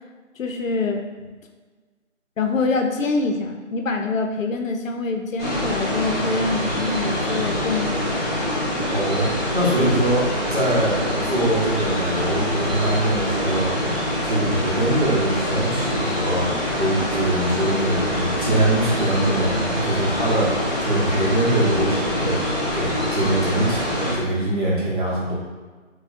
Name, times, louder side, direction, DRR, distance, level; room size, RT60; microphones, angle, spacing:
voice 1, 0.4-1.0 2.4-7.9, left 3 dB, 85° left, 3 dB, 0.6 m, -25 dB
sound 1, 5.4-24.2, left 1 dB, 20° left, 1.4 m, -25 dB
voice 2, 8.9-10.2 10.5-25.3, right 1 dB, 40° right, -7 dB, 0.9 m, -23 dB
4.1 x 2.2 x 2.6 m, 1.4 s
figure-of-eight pair, 175°, 38 cm